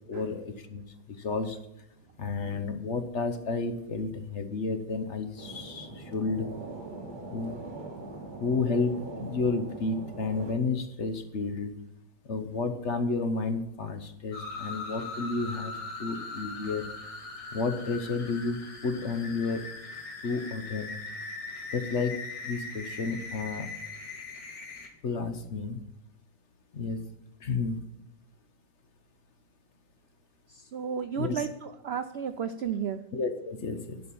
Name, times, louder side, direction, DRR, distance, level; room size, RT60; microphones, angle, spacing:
voice 1, 0.1-1.6 2.2-6.5 7.3-7.5 8.4-11.7 12.3-16.9 17.5-19.7 20.2-21.0 21.7-23.7 25.0-25.8 26.7-27.0 27.4-27.8 31.2-31.5 33.1-34.0, left 4 dB, 50° left, 8 dB, 1.1 m, -31 dB
sound 1, 5.4-10.5, right 2 dB, 30° right, 1.3 m, -42 dB
sound 2, 14.3-24.9, left 3 dB, 70° left, 2.3 m, -40 dB
voice 2, 30.5-33.0, right 7 dB, 80° right, 9 dB, 0.5 m, -33 dB
11.5 x 5.4 x 8.4 m, 0.85 s
omnidirectional pair, 1.8 m